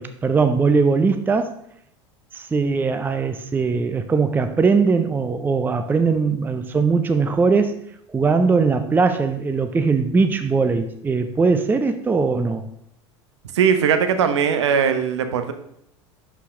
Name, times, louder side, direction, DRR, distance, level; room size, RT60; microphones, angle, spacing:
voice 1, 0.0-1.5 2.3-7.7 8.1-12.6, right 4 dB, 10° right, 9 dB, 0.5 m, -20 dB
voice 2, 13.5-15.5, right 7 dB, 65° right, 8 dB, 0.8 m, -19 dB
6.3 x 5.8 x 4.9 m, 0.75 s
figure-of-eight pair, 75°, 16 cm